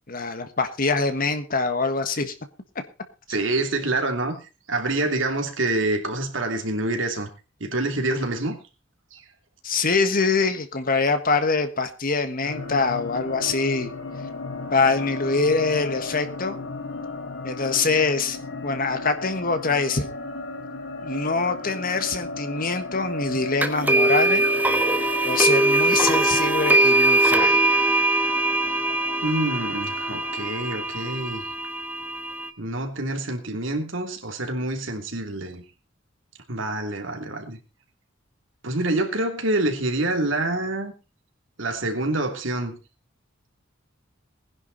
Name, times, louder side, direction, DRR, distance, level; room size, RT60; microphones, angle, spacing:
voice 1, 0.1-2.3 9.6-13.9 14.7-16.6 17.4-18.4 18.6-20.1 21.0-24.5 25.2-27.6, left 4 dB, 45° left, 1.5 m, -24 dB
voice 2, 3.3-4.3 4.7-7.3 7.6-8.6 9.1-9.2 29.2-31.4 32.6-35.6 36.5-37.6 38.6-40.9 41.6-42.8, right 2 dB, 70° right, 3.0 m, -26 dB
sound 1, 12.4-31.4, left 2 dB, 80° left, 3.2 m, -35 dB
sound 2, 23.6-32.5, right 2 dB, 10° right, 1.3 m, -21 dB
20.0 x 10.5 x 4.1 m
head